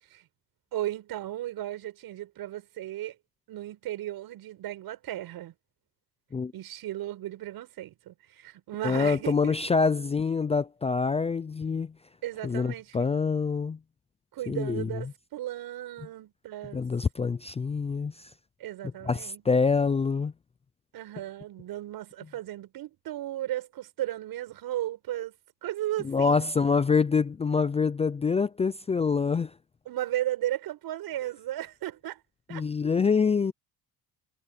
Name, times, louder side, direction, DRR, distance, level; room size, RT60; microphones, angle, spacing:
voice 1, 0.7-3.2 3.5-5.5 6.5-9.6 12.2-13.1 14.3-16.9 18.6-19.4 20.9-25.3 25.6-26.5 29.9-32.2 32.5-32.6, right 13 dB, 70° right, 7.2 m, -35 dB
voice 2, 8.8-11.9 12.4-13.8 14.5-15.0 16.7-18.3 19.0-20.3 26.0-29.5 32.5-33.5, left 5 dB, 15° left, 0.4 m, -26 dB
cardioid pair, 145°, 38 cm